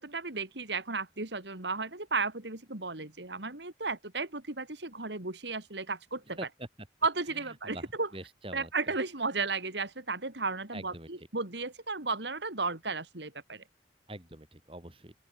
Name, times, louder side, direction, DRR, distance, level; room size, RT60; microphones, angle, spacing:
voice 1, 0.0-6.4 7.0-8.1 8.5-13.6, right 4 dB, 80° right, 3.4 m, -34 dB
voice 2, 6.4-6.7 7.3-9.0 10.7-11.1 14.1-15.1, right 1 dB, 30° right, 5.9 m, -44 dB
open air
head